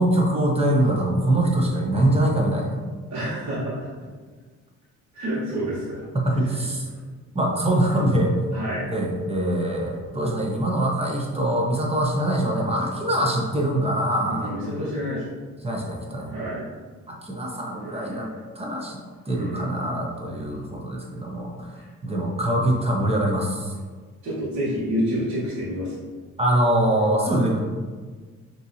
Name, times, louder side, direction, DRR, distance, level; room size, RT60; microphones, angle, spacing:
voice 1, 0.0-2.7 6.1-6.9 7.3-8.3 8.9-14.5 15.6-16.3 17.1-18.3 18.6-19.0 19.3-21.7 22.0-23.7 26.4-27.6, right 1 dB, 20° right, -1 dB, 0.9 m, -23 dB
voice 2, 3.1-3.9 5.1-6.0 8.5-8.8 14.3-15.3 16.3-16.7 17.9-18.1 19.3-20.5 21.8-21.9 24.2-25.9, equal, 65° right, -11 dB, 1.5 m, -29 dB
5.2 x 3.1 x 2.7 m, 1.5 s
cardioid pair, 90°, 30 cm